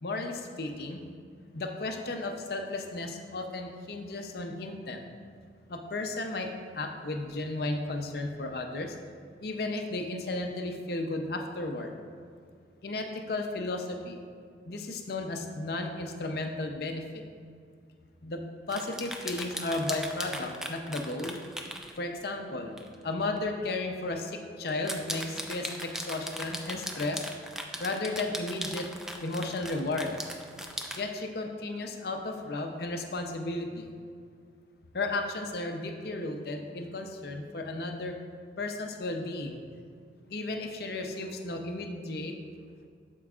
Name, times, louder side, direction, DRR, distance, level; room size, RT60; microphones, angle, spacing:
voice 1, 0.0-1.1 1.5-5.0 5.7-6.5 6.7-8.9 9.4-12.0 12.8-14.2 14.7-17.2 18.2-18.4 18.7-21.4 22.0-22.8 23.0-27.2 27.8-28.9 29.2-30.2 31.0-33.9 34.9-38.1 38.6-39.6 40.3-42.3, left 2 dB, 60° left, 4 dB, 0.6 m, -34 dB
sound 1, 18.7-22.0 22.8-22.9 23.4-23.5 24.7-31.0, equal, 5° right, 0.4 m, -38 dB
12.0 x 4.6 x 2.4 m, 2.2 s
head